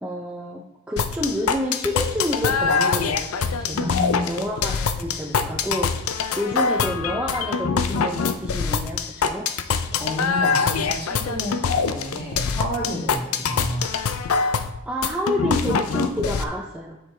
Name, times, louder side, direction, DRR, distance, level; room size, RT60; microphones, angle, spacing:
voice 1, 0.0-3.9 4.3-9.5 14.9-17.0, equal, 5° right, -2 dB, 0.6 m, -29 dB
sound 1, 1.0-16.4, left 5 dB, 90° left, 0.5 m, -24 dB
voice 2, 3.7-4.3 9.9-13.9, left 1 dB, 25° left, -4 dB, 2.2 m, -30 dB
7.9 x 6.4 x 3.3 m, 0.96 s
head